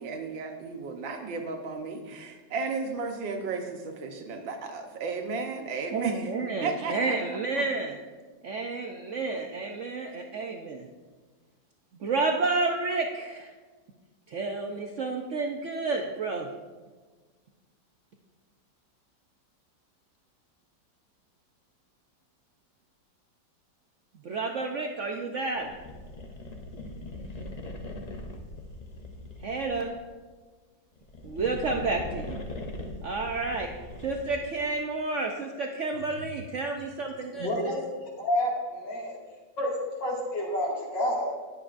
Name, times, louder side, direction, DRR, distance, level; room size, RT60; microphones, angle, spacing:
voice 1, 0.0-6.3 6.6-7.2 7.6-7.7, right 4 dB, 90° right, 4 dB, 1.8 m, -34 dB
voice 2, 5.9-8.0 8.4-10.9 12.0-13.5 14.3-16.5 24.2-25.7 29.4-29.9 31.2-32.4 33.0-33.7 34.0-37.7, right 3 dB, 60° right, 2 dB, 0.8 m, -30 dB
sound 1, 25.6-30.0 30.9-34.6, left 1 dB, 40° left, 0.5 m, -40 dB
voice 3, 37.4-37.8 38.2-39.2 39.6-39.7 40.0-41.3, left 1 dB, 75° left, -3 dB, 2.8 m, -29 dB
19.5 x 7.6 x 2.5 m, 1.4 s
omnidirectional pair, 2.0 m